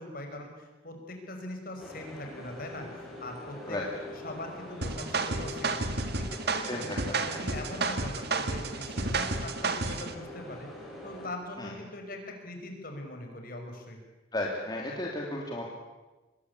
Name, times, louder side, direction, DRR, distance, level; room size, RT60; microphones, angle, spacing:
voice 1, 0.0-3.8 4.2-6.9 7.2-10.7 11.0-14.0, left 1 dB, 45° left, 4 dB, 5.5 m, -41 dB
sound 1, 1.8-11.3, left 1 dB, ahead, 7.5 m, -44 dB
sound 2, 4.8-10.1, right 3 dB, 55° right, 1.8 m, -31 dB
voice 2, 6.6-7.4 11.6-11.7 14.3-15.7, left 1 dB, 20° left, -2 dB, 3.1 m, -34 dB
25.0 x 21.5 x 8.5 m, 1.1 s
head